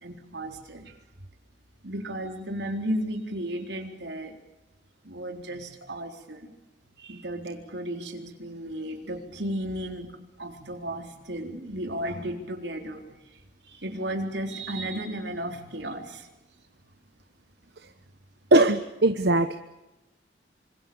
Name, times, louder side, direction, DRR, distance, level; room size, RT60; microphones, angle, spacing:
voice 1, 0.0-0.9 1.8-4.4 5.0-6.5 7.0-10.1 10.4-16.3, right 1 dB, 85° right, 4 dB, 4.0 m, -34 dB
voice 2, 18.5-19.6, right 2 dB, 65° right, 9 dB, 1.1 m, -20 dB
26.5 x 25.5 x 7.1 m, 0.97 s
head